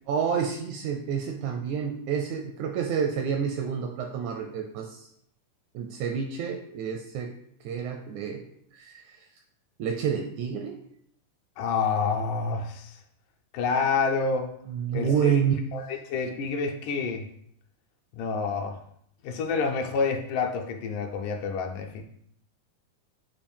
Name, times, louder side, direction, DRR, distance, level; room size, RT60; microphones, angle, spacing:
voice 1, 0.1-5.1 5.7-7.3 7.7-8.4 8.7-9.0 9.8-10.7 14.7-15.7, right 7 dB, 80° right, 4 dB, 1.7 m, -28 dB
voice 2, 11.6-12.9 13.5-14.5 14.9-15.4 15.7-17.3 18.2-18.8 19.2-22.0, left 5 dB, 80° left, 2 dB, 2.3 m, -28 dB
7.0 x 2.5 x 5.3 m, 0.70 s
omnidirectional pair, 3.8 m